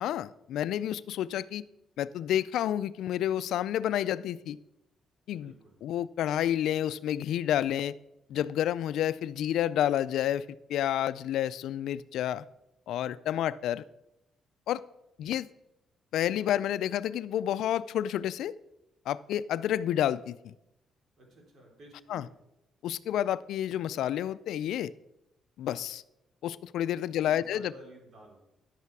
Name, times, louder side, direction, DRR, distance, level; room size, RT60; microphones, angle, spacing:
voice 1, 0.0-1.6 2.0-4.6 5.3-5.5 5.8-7.9 8.3-10.4 10.7-12.4 12.9-13.8 14.7-14.8 15.2-15.5 16.1-18.5 19.1-20.5 22.1-22.3 22.8-24.9 25.6-26.0 26.4-27.7, left 11 dB, 80° left, 17 dB, 0.3 m, -29 dB
voice 2, 5.3-5.8 21.2-22.4 26.9-28.4, right 1 dB, 55° right, 0 dB, 3.7 m, -53 dB
10.5 x 8.2 x 4.7 m, 0.88 s
cardioid pair, 90°, 0 cm